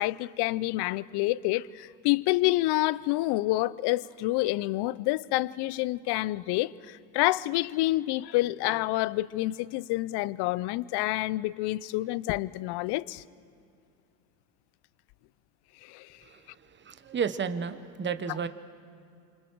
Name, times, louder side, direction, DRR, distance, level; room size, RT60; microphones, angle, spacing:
voice 1, 0.0-13.2 15.8-16.1, left 18 dB, 55° left, 0.6 m, -28 dB
voice 2, 16.2-18.5, right 6 dB, 25° right, 1.1 m, -33 dB
28.0 x 25.5 x 4.7 m
supercardioid pair, 100°, 47 cm